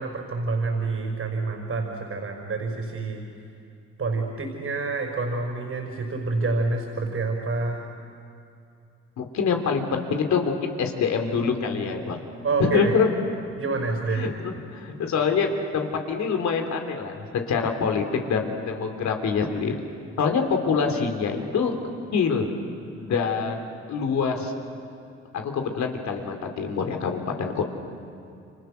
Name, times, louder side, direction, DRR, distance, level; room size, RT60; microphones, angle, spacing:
voice 1, 0.0-3.2 4.0-7.8 12.4-12.9 13.6-14.3, right 3 dB, 50° right, 2 dB, 5.2 m, -27 dB
voice 2, 9.2-12.2 12.6-13.1 14.1-19.8 20.2-21.7 22.1-22.5 22.9-24.5 25.3-27.6, left 5 dB, 70° left, 3 dB, 3.4 m, -25 dB
29.5 x 25.5 x 6.6 m, 2.7 s
supercardioid pair, 65°, 29 cm